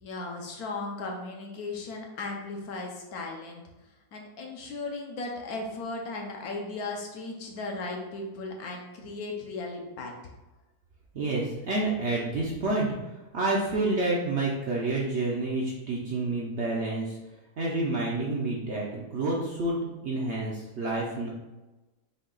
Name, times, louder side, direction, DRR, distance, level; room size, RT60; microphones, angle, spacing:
voice 1, 0.0-3.6 4.1-10.1, left 3 dB, 70° left, 1 dB, 1.2 m, -36 dB
voice 2, 11.1-12.9 13.3-17.2 17.6-21.3, right 2 dB, 60° right, -4 dB, 0.8 m, -29 dB
5.5 x 2.3 x 3.8 m, 1.1 s
omnidirectional pair, 1.8 m